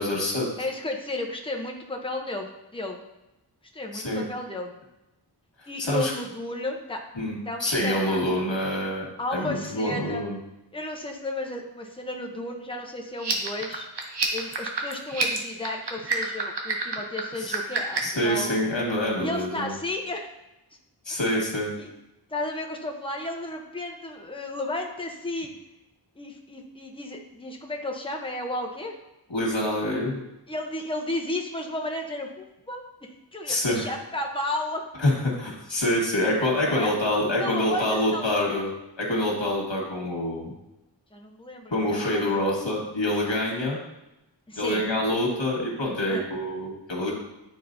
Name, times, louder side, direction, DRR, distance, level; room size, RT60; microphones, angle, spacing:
voice 1, 0.0-0.5 3.9-4.2 5.6-6.1 7.2-9.1 9.3-10.4 17.4-17.6 18.0-19.7 21.1-21.7 29.3-30.2 33.5-33.9 35.0-38.7 39.0-40.5 41.7-43.8 44.6-47.1, left 1 dB, 80° left, -2 dB, 1.8 m, -26 dB
voice 2, 0.6-3.0 3.7-4.7 5.7-7.0 7.5-8.4 9.2-10.3 10.7-13.9 14.3-18.6 19.2-20.3 21.8-21.9 22.3-25.5 26.2-29.0 30.5-34.8 36.6-37.0 37.4-38.2 41.1-42.4 44.5-44.9 46.1-46.3 47.1-47.2, left 1 dB, 10° left, 2 dB, 0.8 m, -33 dB
sound 1, 13.1-18.2, right 4 dB, 65° right, 1.0 m, -29 dB
9.9 x 4.1 x 2.7 m, 0.94 s
wide cardioid pair, 60°, 44 cm